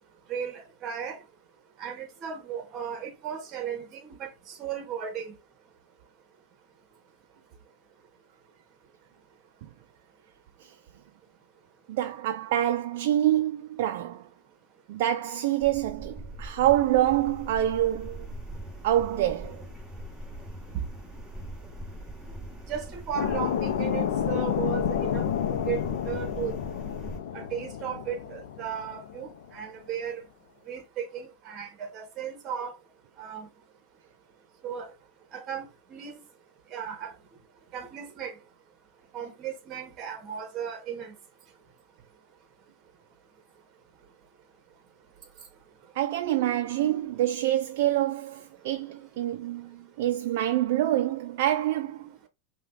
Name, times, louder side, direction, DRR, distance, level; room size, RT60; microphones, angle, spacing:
voice 1, 0.3-1.2 1.8-5.3 22.7-25.2 25.7-26.6 27.3-30.2 30.7-32.7 33.2-33.5 34.6-34.9 35.3-35.6 35.9-36.2 36.7-37.1 37.7-38.3 39.1-41.1, right 8 dB, 35° right, 1.1 m, -35 dB
voice 2, 11.9-14.3 14.9-18.3 18.8-19.7 45.9-52.2, right 13 dB, 60° right, 0.4 m, -26 dB
sound 1, 15.6-27.2, right 1 dB, ahead, 1.5 m, -41 dB
sound 2, 23.1-29.5, left 9 dB, 75° left, 0.5 m, -30 dB
5.0 x 2.3 x 2.5 m
hypercardioid pair, 125°, 0 cm